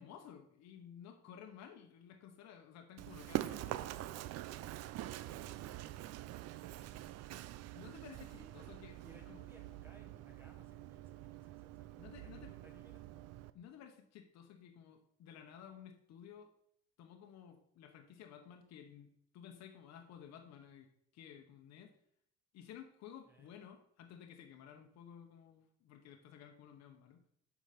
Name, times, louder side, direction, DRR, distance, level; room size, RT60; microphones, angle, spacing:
voice 1, 0.0-4.2 7.7-9.0 9.3-9.4 12.0-12.5 13.5-16.5 17.0-21.9 22.5-27.2, left 8 dB, 65° left, 4 dB, 1.0 m, -55 dB
Run, 3.0-13.5, right 15 dB, 60° right, 0.5 m, -45 dB
voice 2, 5.2-6.3 6.6-7.5 8.3-8.5 9.0-13.4 23.3-23.5, equal, 10° right, 3 dB, 1.2 m, -64 dB
8.4 x 5.1 x 5.8 m, 0.69 s
cardioid pair, 180°, 29 cm